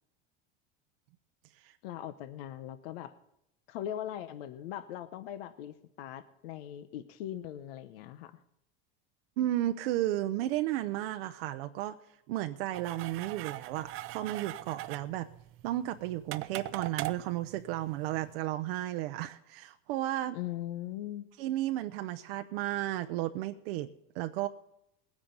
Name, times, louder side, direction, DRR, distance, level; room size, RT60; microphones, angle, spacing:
voice 1, 1.8-3.1 3.7-8.4 20.3-21.3, left 11 dB, 85° left, 13 dB, 0.9 m, -40 dB
voice 2, 9.4-12.0 12.3-15.3 15.6-20.4 21.4-24.5, right 14 dB, 80° right, 7 dB, 0.7 m, -33 dB
sound 1, 12.7-18.3, right 16 dB, 45° right, 0.6 m, -41 dB
19.5 x 9.8 x 3.9 m, 0.81 s
supercardioid pair, 135°, 29 cm